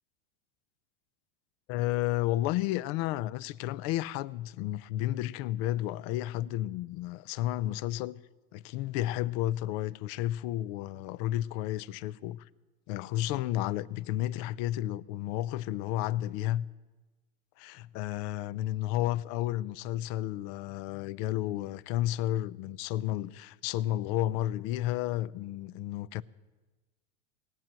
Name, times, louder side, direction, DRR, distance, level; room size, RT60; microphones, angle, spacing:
voice 1, 1.7-8.2 8.5-12.5 12.9-16.7 17.6-26.2, left 14 dB, 55° left, 0.5 m, -32 dB
18.5 x 9.1 x 7.5 m
supercardioid pair, 130°, 36 cm